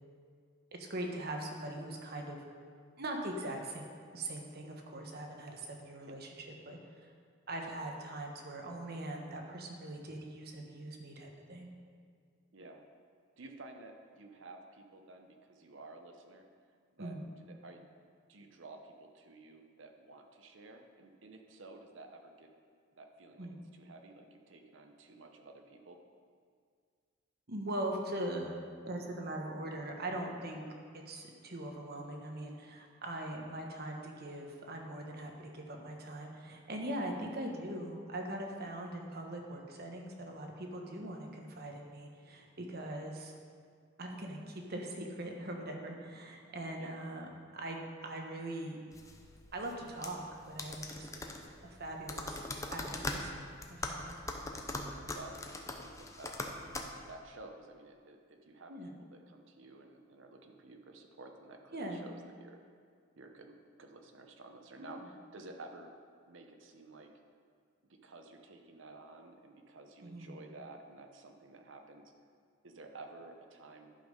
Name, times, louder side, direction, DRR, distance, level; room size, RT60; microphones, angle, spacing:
voice 1, 0.7-2.4 3.0-3.9 4.1-6.3 6.7-6.8 7.5-11.7 17.0-17.3 23.4-23.6 27.5-28.6 28.8-30.6 30.9-43.3 44.0-47.3 47.5-48.8 49.5-51.3 51.6-52.5 52.7-54.2 58.7-58.9 61.7-62.0 64.8-65.0 70.0-70.3, right 1 dB, 55° right, 2 dB, 1.2 m, -41 dB
voice 2, 12.5-12.8 13.4-16.4 16.9-17.8 18.3-22.5 22.9-26.0 39.5-39.6 46.7-47.0 55.1-55.4 55.7-56.4 57.0-62.6 63.2-65.9 66.3-67.1 67.9-72.1 72.6-73.9, right 2 dB, 70° right, 4 dB, 0.9 m, -52 dB
sound 1, 48.9-56.8, left 2 dB, 15° left, 0.6 m, -42 dB
11.0 x 5.5 x 5.2 m, 2.1 s
head